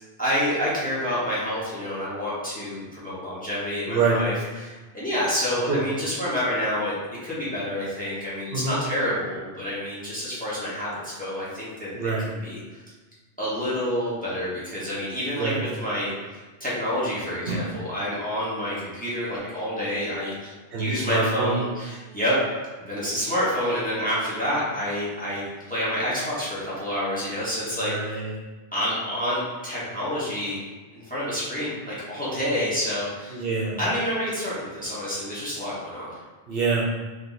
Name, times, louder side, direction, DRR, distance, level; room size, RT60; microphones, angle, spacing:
voice 1, 0.2-4.3 4.6-10.9 11.2-12.1 12.4-12.6 13.4-15.5 15.8-16.1 16.6-22.4 22.8-27.9 28.7-30.6 31.1-33.4 33.8-36.1, equal, 10° left, -9 dB, 1.2 m, -28 dB
voice 2, 3.9-4.2 5.7-5.9 8.5-8.8 11.9-12.2 15.4-15.6 17.5-17.6 20.7-21.6 27.7-28.4 33.3-33.8 36.5-36.8, right 4 dB, 65° right, -4 dB, 0.9 m, -25 dB
3.7 x 2.6 x 4.0 m, 1.3 s
omnidirectional pair, 1.1 m